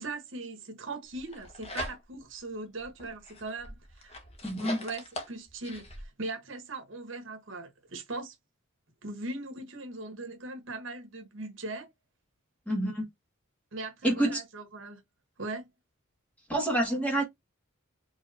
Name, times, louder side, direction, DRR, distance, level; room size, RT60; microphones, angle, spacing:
voice 1, 0.0-4.1 4.8-8.3 9.0-11.9 13.7-15.0 15.4-15.7, right 2 dB, 70° right, 1.3 m, -39 dB
sound 1, 1.1-2.3 2.8-6.0, left 1 dB, 30° left, 1.1 m, -41 dB
voice 2, 4.4-4.8 12.7-13.0 14.0-14.4 16.5-17.2, right 1 dB, 5° left, 2.0 m, -27 dB
4.8 x 3.7 x 2.7 m
head